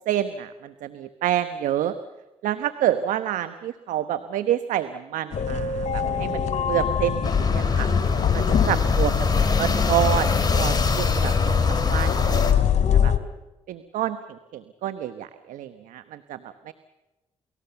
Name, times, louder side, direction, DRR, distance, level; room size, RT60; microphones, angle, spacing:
voice 1, 0.0-1.9 2.4-7.9 8.3-9.1 9.6-11.6 11.9-12.6 12.9-13.1 13.7-16.4 16.7-16.8, right 11 dB, 80° right, 10 dB, 1.1 m, -28 dB
sound 1, 5.3-13.2, left 8 dB, 65° left, 2.6 m, -24 dB
sound 2, 7.2-12.5, left 4 dB, 30° left, 4.5 m, -23 dB
29.0 x 20.0 x 7.0 m, 1.0 s
supercardioid pair, 55°, 13 cm